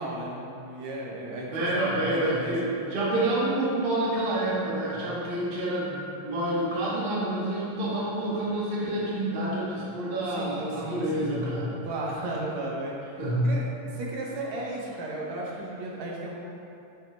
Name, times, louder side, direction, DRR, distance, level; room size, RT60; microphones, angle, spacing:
voice 1, 0.0-2.5 10.3-11.4 11.8-12.9 13.4-13.7 13.9-16.4, right 2 dB, 80° right, -3 dB, 1.6 m, -34 dB
voice 2, 1.5-11.8 13.2-13.5, right 1 dB, 50° right, -7 dB, 0.6 m, -28 dB
5.8 x 2.1 x 4.0 m, 2.7 s
omnidirectional pair, 2.3 m